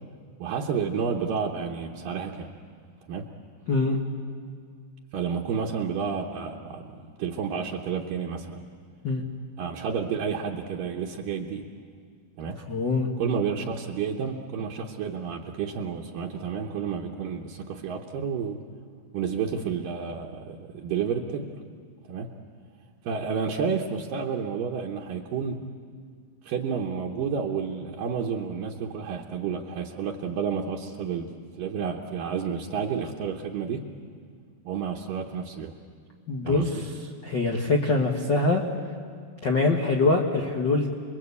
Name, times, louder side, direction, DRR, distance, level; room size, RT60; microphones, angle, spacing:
voice 1, 0.4-2.5 3.1-3.3 5.1-8.6 9.6-11.6 12.4-12.6 13.2-18.6 19.1-21.5 22.1-22.3 23.0-25.6 26.4-33.9 34.6-35.7 36.4-36.8, right 6 dB, 70° right, -1 dB, 2.5 m, -30 dB
voice 2, 3.7-4.0 9.0-9.2 12.7-13.1 36.3-36.7 37.2-38.6 39.4-40.9, left 3 dB, 80° left, 1 dB, 1.0 m, -23 dB
29.0 x 22.0 x 8.3 m, 2.1 s
omnidirectional pair, 4.6 m